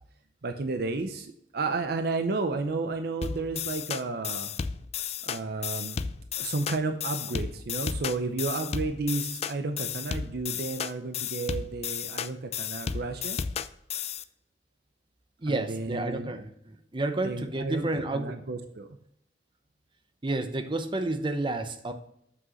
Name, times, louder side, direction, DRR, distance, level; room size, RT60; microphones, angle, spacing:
voice 1, 0.4-4.5 5.2-6.0 6.4-13.4 15.5-16.4 17.2-19.0, right 3 dB, 60° right, 7 dB, 0.6 m, -32 dB
sound 1, 3.2-14.2, left 7 dB, 35° left, 0.4 m, -33 dB
voice 2, 15.4-18.3 20.2-21.9, right 2 dB, 30° right, 8 dB, 0.7 m, -30 dB
7.8 x 6.1 x 3.1 m, 0.74 s
head